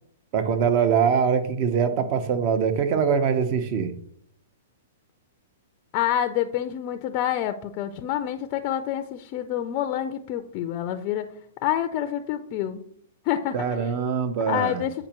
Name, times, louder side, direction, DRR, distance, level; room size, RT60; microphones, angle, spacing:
voice 1, 0.3-4.0 13.5-14.8, right 7 dB, 45° right, 10 dB, 0.8 m, -23 dB
voice 2, 5.9-11.3 11.6-12.8 13.2-13.5 14.5-14.9, left 11 dB, 40° left, 7 dB, 0.4 m, -27 dB
8.6 x 5.0 x 3.0 m, 0.68 s
hypercardioid pair, 135°, 0 cm